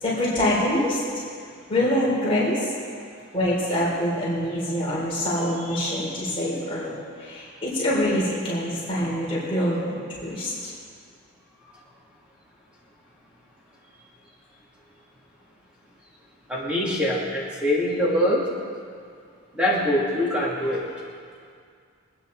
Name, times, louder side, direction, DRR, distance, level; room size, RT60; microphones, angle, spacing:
voice 1, 0.0-1.0 1.7-2.7 3.3-6.9 7.2-10.7, left 1 dB, 25° left, -8 dB, 3.6 m, -25 dB
voice 2, 5.7-6.1 16.5-18.4 19.5-20.8, left 1 dB, 5° right, -6 dB, 2.8 m, -24 dB
24.5 x 9.4 x 3.9 m, 2.2 s
head